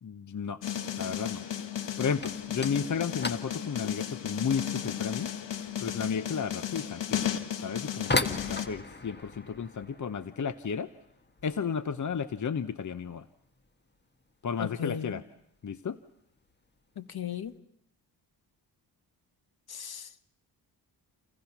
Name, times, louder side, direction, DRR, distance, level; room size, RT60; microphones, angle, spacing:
voice 1, 0.0-0.6 1.0-1.4 2.0-5.3 5.8-7.2 7.6-10.9 11.4-13.3 14.4-15.2 15.6-16.0, left 6 dB, 45° left, 12 dB, 1.0 m, -33 dB
sound 1, 0.6-8.7, left 9 dB, 85° left, 1.7 m, -35 dB
sound 2, 2.2-12.9 13.1-13.7 14.0-14.3 14.6-14.7 15.4-15.5 16.4-16.7 17.0-17.5, left 2 dB, 25° left, 1.7 m, -38 dB
voice 2, 14.6-15.2 17.0-17.5 19.7-20.1, left 9 dB, 60° left, 12 dB, 1.5 m, -36 dB
29.0 x 28.0 x 6.0 m, 0.76 s
cardioid pair, 60°, 42 cm